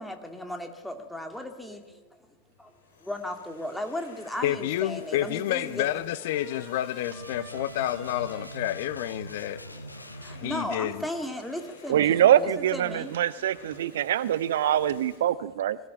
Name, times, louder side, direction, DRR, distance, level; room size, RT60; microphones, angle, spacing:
voice 1, 0.0-1.8 3.1-6.0 10.2-13.5, left 1 dB, 5° left, 2.5 m, -36 dB
Domestic sounds home sounds, 1.3-1.7 2.4-15.2, left 4 dB, 65° left, 7.9 m, -53 dB
voice 2, 4.4-9.6 10.4-11.0, left 13 dB, 50° left, 0.8 m, -29 dB
Trumpet, 5.1-11.3, right 3 dB, 20° right, 7.1 m, -53 dB
sound 1, 7.0-10.5, right 1 dB, 85° left, 0.9 m, -43 dB
voice 3, 11.9-15.8, right 11 dB, 60° right, 0.7 m, -24 dB
22.5 x 15.0 x 9.2 m
figure-of-eight pair, 90°, 0 cm